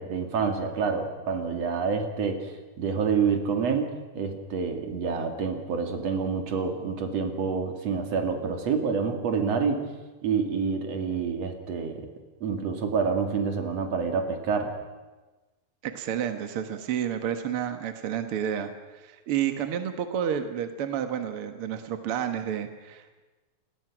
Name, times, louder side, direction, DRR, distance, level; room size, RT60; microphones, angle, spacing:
voice 1, 0.0-9.8 10.2-12.1 12.4-14.7, right 5 dB, 45° right, 5 dB, 3.0 m, -28 dB
voice 2, 15.8-23.2, right 9 dB, 65° right, 8 dB, 1.4 m, -30 dB
28.5 x 20.0 x 6.1 m, 1.2 s
omnidirectional pair, 4.4 m